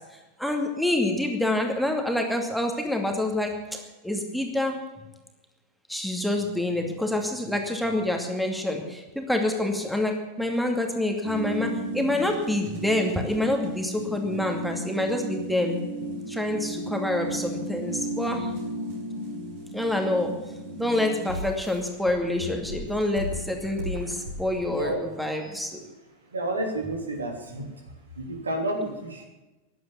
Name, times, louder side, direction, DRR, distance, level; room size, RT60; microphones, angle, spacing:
voice 1, 0.4-4.8 5.9-15.8 16.3-18.5 19.7-20.3 20.7-25.8 28.8-28.9, left 1 dB, ahead, 2 dB, 2.4 m, -27 dB
sound 1, 11.2-24.9, equal, 55° right, 6.3 m, -35 dB
voice 2, 26.3-27.7 28.1-29.3, right 1 dB, 75° right, 3 dB, 3.2 m, -30 dB
15.5 x 11.0 x 7.2 m, 1.1 s
figure-of-eight pair, 90°, 0 cm